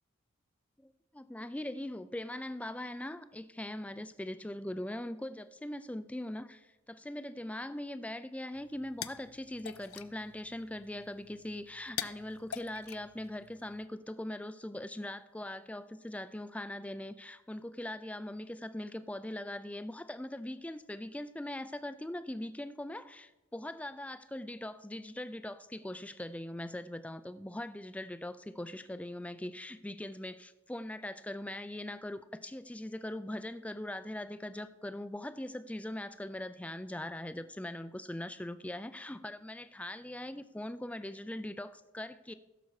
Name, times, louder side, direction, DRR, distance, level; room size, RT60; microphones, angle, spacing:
voice 1, 0.8-42.3, left 1 dB, 5° left, 12 dB, 0.4 m, -41 dB
sound 1, 8.5-13.8, left 10 dB, 75° left, 0.5 m, -46 dB
15.5 x 6.9 x 4.8 m, 1.1 s
head